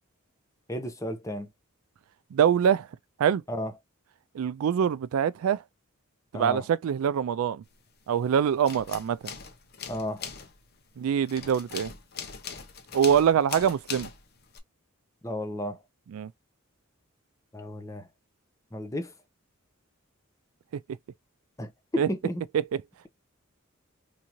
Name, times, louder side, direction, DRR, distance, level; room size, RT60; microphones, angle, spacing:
voice 1, 0.7-1.5 3.5-3.7 6.3-6.7 9.9-10.2 15.2-15.8 17.5-18.1 18.7-19.1 21.6-22.4, left 1 dB, 15° left, 0.7 m, -33 dB
voice 2, 2.3-2.9 3.2-3.4 4.3-5.6 6.3-7.6 8.1-9.3 11.0-11.9 12.9-14.1 16.1-16.3 22.0-22.1, right 8 dB, 80° right, 0.3 m, -24 dB
sound 1, 7.7-8.3 8.5-14.6, left 6 dB, 50° left, 0.8 m, -41 dB
3.6 x 2.7 x 2.9 m
head